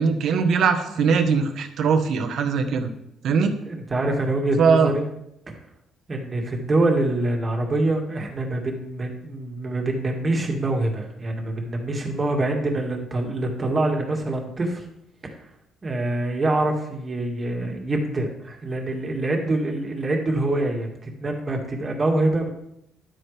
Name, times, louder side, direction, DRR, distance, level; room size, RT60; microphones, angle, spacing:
voice 1, 0.0-2.9 3.2-3.5 4.6-4.9, right 5 dB, 65° right, 6 dB, 1.3 m, -20 dB
voice 2, 3.4-5.1 6.1-14.8 15.2-15.3 15.8-22.5, right 2 dB, 25° right, 1 dB, 2.1 m, -25 dB
12.0 x 8.9 x 3.5 m, 0.79 s
cardioid pair, 125°, 0 cm